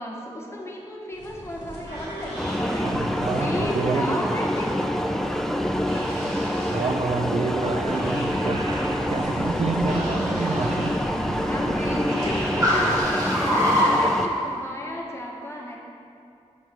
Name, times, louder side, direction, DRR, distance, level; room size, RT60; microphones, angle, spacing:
voice 1, 0.0-2.9 3.3-5.6 11.5-15.8, left 1 dB, 20° left, -2 dB, 1.0 m, -34 dB
sound 1, 1.1-13.0, right 1 dB, 85° right, 1.5 m, -37 dB
sound 2, 2.4-14.3, equal, 5° left, 0.4 m, -26 dB
voice 2, 2.8-4.3 6.7-8.7 9.1-11.0 11.3-11.4 11.7-11.8, right 4 dB, 65° right, 7 dB, 0.4 m, -28 dB
Car, 5.6-14.5, equal, 30° right, 1.5 m, -28 dB
7.1 x 3.1 x 6.0 m, 2.5 s
wide cardioid pair, 70°, 12 cm